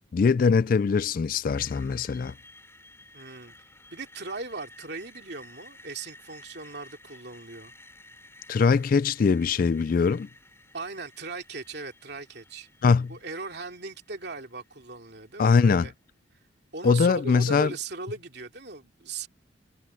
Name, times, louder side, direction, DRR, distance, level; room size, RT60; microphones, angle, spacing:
voice 1, 0.1-2.3 8.5-10.3 12.8-13.1 15.4-15.9 16.8-17.7, left 5 dB, 45° left, 0.3 m, -22 dB
Screech, 1.5-15.5, left 2 dB, 15° left, 7.7 m, -53 dB
voice 2, 3.1-3.5 3.9-7.7 10.7-12.7 13.1-15.9 16.7-19.3, right 3 dB, 55° right, 2.9 m, -38 dB
head